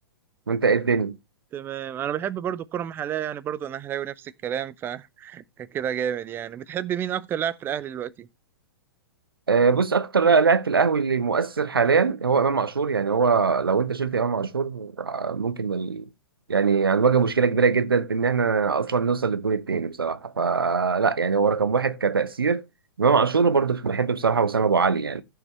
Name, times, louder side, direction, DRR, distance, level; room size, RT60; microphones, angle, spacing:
voice 1, 0.5-1.2 9.5-16.0 16.5-22.6 23.0-25.2, right 5 dB, 75° right, 0.9 m, -22 dB
voice 2, 1.5-8.3, right 9 dB, 15° right, 0.6 m, -30 dB
14.5 x 6.8 x 3.3 m
figure-of-eight pair, 115°, 12 cm